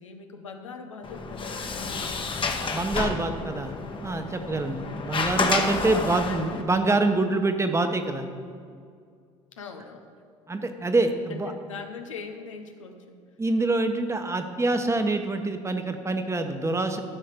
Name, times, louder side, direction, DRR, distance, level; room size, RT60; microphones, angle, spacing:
voice 1, 0.0-2.2 4.5-4.7 6.3-6.6 9.5-10.1 11.3-13.2, left 5 dB, 90° left, 5 dB, 0.9 m, -41 dB
Sliding door, 1.0-6.6, left 4 dB, 30° left, 1.2 m, -30 dB
voice 2, 2.7-3.7 4.0-8.3 10.5-11.5 13.4-17.0, right 2 dB, 15° right, 7 dB, 1.1 m, -26 dB
13.5 x 5.6 x 5.2 m, 2.2 s
hypercardioid pair, 65°, 16 cm